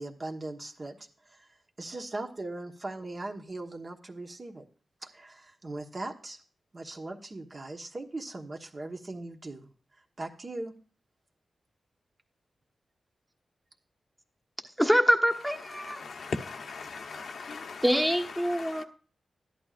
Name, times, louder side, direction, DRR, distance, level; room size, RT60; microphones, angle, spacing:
voice 1, 0.0-1.5 1.8-4.6 5.0-6.4 6.7-9.7 10.2-10.7, right 2 dB, 35° right, 1.2 m, -39 dB
voice 2, 14.8-16.0 17.8-18.8, equal, 5° right, 1.3 m, -25 dB
voice 3, 15.7-17.8 18.4-18.8, left 4 dB, 75° left, 1.0 m, -39 dB
13.0 x 11.0 x 2.5 m
wide cardioid pair, 110°, 0 cm